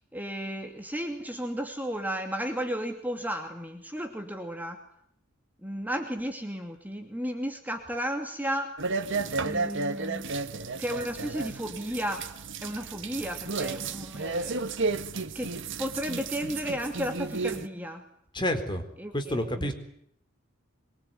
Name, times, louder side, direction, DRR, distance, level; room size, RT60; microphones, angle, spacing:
voice 1, 0.1-4.8 5.6-8.7 9.4-10.3 10.8-12.3 12.6-14.9 15.3-18.0 19.0-19.7, equal, 10° right, 4 dB, 2.6 m, -34 dB
sound 1, 8.8-17.7, right 3 dB, 60° right, 1.7 m, -33 dB
voice 2, 18.3-18.8 19.1-19.7, equal, 25° left, 6 dB, 4.1 m, -28 dB
24.0 x 23.0 x 9.4 m, 0.70 s
head